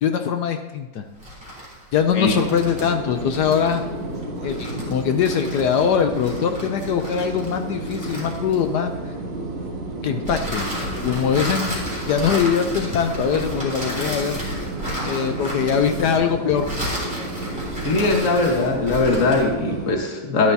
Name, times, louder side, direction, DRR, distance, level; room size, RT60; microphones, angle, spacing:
voice 1, 0.0-1.0 1.9-3.8 4.4-8.9 10.0-10.7 10.9-11.7 12.1-14.4 15.0-16.7, left 7 dB, 70° left, 7 dB, 1.0 m, -22 dB
sound 1, 1.1-8.9 10.2-19.5, equal, 5° right, 3.2 m, -33 dB
sound 2, 2.2-20.0, right 2 dB, 60° right, 3.0 m, -31 dB
voice 2, 17.8-20.5, left 3 dB, 45° left, 2 dB, 1.6 m, -20 dB
13.5 x 10.5 x 2.8 m, 1.2 s
omnidirectional pair, 2.2 m